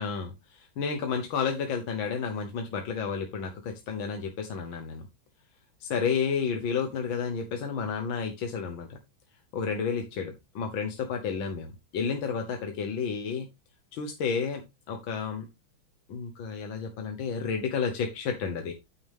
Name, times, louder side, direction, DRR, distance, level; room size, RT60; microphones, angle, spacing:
voice 1, 0.0-5.1 5.8-9.0 9.5-13.5 13.9-15.5 16.1-18.7, left 6 dB, 75° left, 5 dB, 1.9 m, -31 dB
9.0 x 7.0 x 3.5 m, 0.23 s
omnidirectional pair, 2.2 m